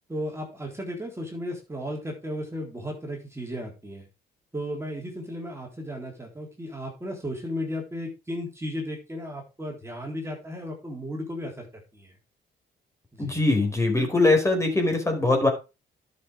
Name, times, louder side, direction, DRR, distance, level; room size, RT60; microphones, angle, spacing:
voice 1, 0.1-4.0 4.5-11.7 11.9-12.1 13.1-13.4, equal, 15° right, 0 dB, 3.8 m, -35 dB
voice 2, 13.2-15.5, left 2 dB, 15° left, 4 dB, 4.6 m, -22 dB
11.0 x 6.7 x 5.0 m, 0.29 s
cardioid pair, 90°, 20 cm